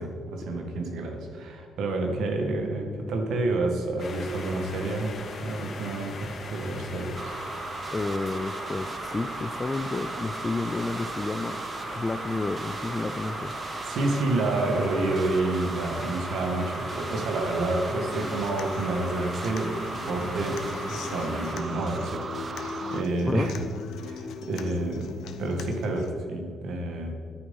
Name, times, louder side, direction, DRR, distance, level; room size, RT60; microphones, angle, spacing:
voice 1, 0.0-5.1 5.4-7.3 13.3-13.4 13.9-19.8 20.1-20.6 20.9-23.5 24.0-27.1, right 2 dB, 75° right, 3 dB, 1.9 m, -29 dB
sound 1, 4.0-21.5, left 3 dB, 55° left, 2.4 m, -40 dB
sound 2, 7.2-23.0, right 4 dB, 35° right, 0.3 m, -37 dB
voice 2, 7.9-11.6 11.9-13.5 23.3-23.5, left 3 dB, 25° left, 14 dB, 0.5 m, -30 dB
Human voice / Acoustic guitar, 18.1-26.1, left 6 dB, 80° left, 0.9 m, -39 dB
11.0 x 9.4 x 5.6 m, 2.2 s
cardioid pair, 90°, 0 cm